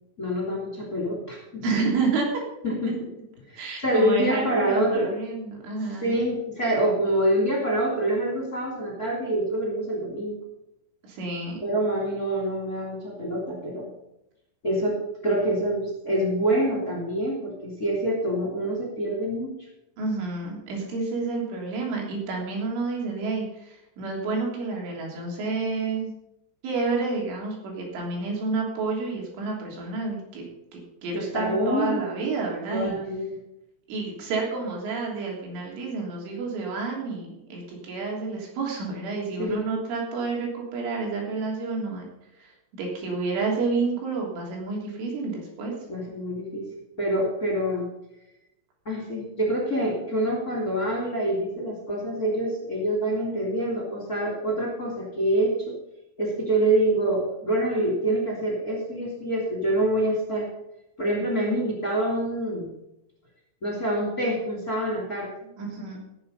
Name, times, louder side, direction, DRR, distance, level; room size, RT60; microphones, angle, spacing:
voice 1, 0.2-1.6 2.6-3.1 3.5-5.1 6.0-10.4 11.6-13.9 14.6-15.0 15.2-19.5 31.1-32.0 32.7-33.4 39.4-39.6 45.9-46.7 47.0-47.9 48.8-55.7 56.2-60.5 61.0-62.7 63.6-65.3, right 1 dB, 25° left, -2 dB, 2.7 m, -26 dB
voice 2, 1.6-2.4 2.9-3.0 3.6-6.1 11.0-11.6 20.0-26.1 26.6-30.5 30.7-33.0 33.9-42.1 42.4-45.7 65.6-66.0, right 4 dB, 80° right, -1 dB, 5.7 m, -29 dB
17.5 x 7.5 x 5.5 m, 0.85 s
omnidirectional pair, 5.5 m